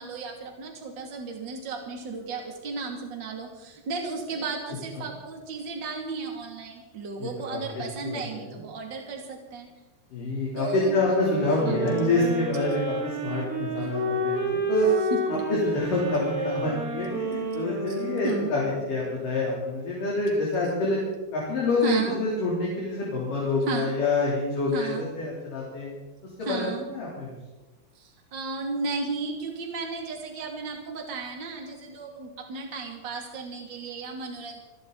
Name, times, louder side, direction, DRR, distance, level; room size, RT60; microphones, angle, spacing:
voice 1, 0.0-9.7 10.6-11.0 11.6-11.9 15.3-15.4 17.9-18.0 18.2-18.5 21.8-22.2 23.7-24.0 24.7-25.1 26.4-26.9 27.9-34.6, right 4 dB, 30° right, 1 dB, 2.6 m, -34 dB
voice 2, 7.2-7.6 8.0-8.4 10.1-14.9 15.3-18.6 18.9-21.0 21.3-25.9 26.4-27.4, left 2 dB, 50° left, -5 dB, 4.8 m, -27 dB
sound 1, 11.1-19.1, right 1 dB, 85° right, 6.5 m, -30 dB
27.5 x 12.0 x 4.0 m, 1.1 s
omnidirectional pair, 4.9 m